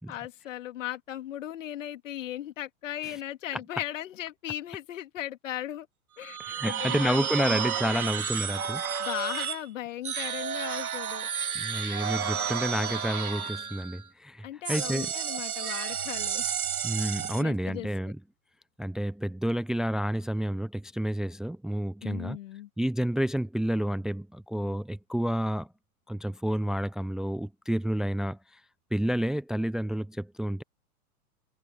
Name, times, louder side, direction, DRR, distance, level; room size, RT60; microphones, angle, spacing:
voice 1, 0.0-5.9 6.2-6.4 6.6-8.2 9.0-11.3 14.4-16.4 17.4-18.1 22.0-22.7, left 13 dB, 55° left, 3.3 m, -37 dB
sound 1, 6.2-9.6 10.0-14.0 14.6-17.4, right 7 dB, 75° right, 2.1 m, -32 dB
voice 2, 6.4-8.8 11.5-15.1 16.8-18.2 18.8-22.4 22.8-25.7 26.1-28.4 28.9-30.6, equal, ahead, 0.6 m, -30 dB
figure-of-eight pair, 105°, 44 cm